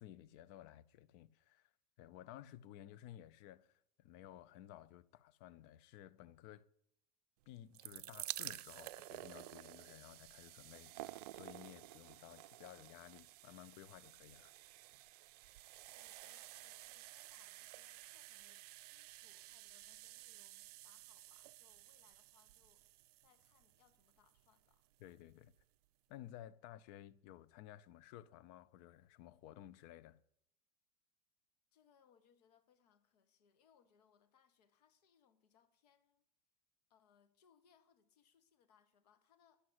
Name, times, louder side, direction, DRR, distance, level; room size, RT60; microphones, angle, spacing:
voice 1, 0.0-1.7 2.0-6.7 7.5-14.5 25.0-25.5 26.1-30.2, left 12 dB, 55° left, 0.6 m, -56 dB
sound 1, 7.5-24.5 25.3-25.4 25.6-25.7, right 17 dB, 70° right, 0.4 m, -52 dB
voice 2, 15.9-22.8 23.2-24.9 31.7-36.2 36.9-39.6, left 7 dB, 75° left, 1.3 m, -73 dB
10.0 x 7.8 x 7.7 m
hypercardioid pair, 90°, 21 cm